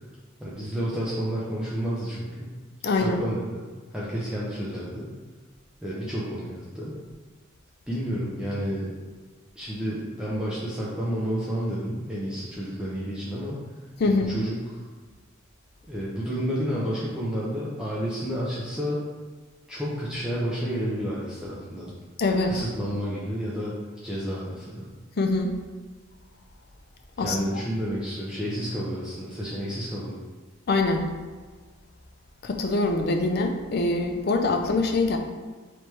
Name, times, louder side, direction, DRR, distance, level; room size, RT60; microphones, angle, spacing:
voice 1, 0.4-2.5 2.9-3.6 3.9-5.1 5.8-6.9 7.9-9.0 9.6-13.6 14.1-14.8 15.9-19.0 19.7-21.9 22.4-23.8 24.0-24.9 27.2-30.2, equal, 5° right, -8 dB, 0.6 m, -30 dB
voice 2, 2.8-3.2 14.0-14.3 22.2-22.6 25.2-25.5 27.2-27.4 30.7-31.0 32.4-35.2, left 3 dB, 50° left, 4 dB, 0.5 m, -24 dB
3.4 x 3.1 x 4.5 m, 1.4 s
head